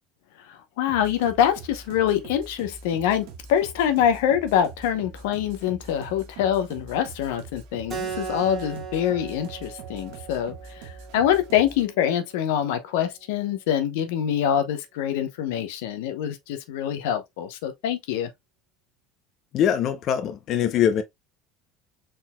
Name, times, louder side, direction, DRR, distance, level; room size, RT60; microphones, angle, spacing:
voice 1, 0.5-18.3, left 10 dB, 90° left, 0.8 m, -25 dB
sound 1, 0.9-11.9, right 4 dB, 75° right, 1.3 m, -44 dB
Keyboard (musical), 7.9-13.0, right 6 dB, 25° right, 1.7 m, -38 dB
voice 2, 19.5-21.0, left 9 dB, 45° left, 0.7 m, -22 dB
4.5 x 3.8 x 2.2 m
cardioid pair, 135°, 0 cm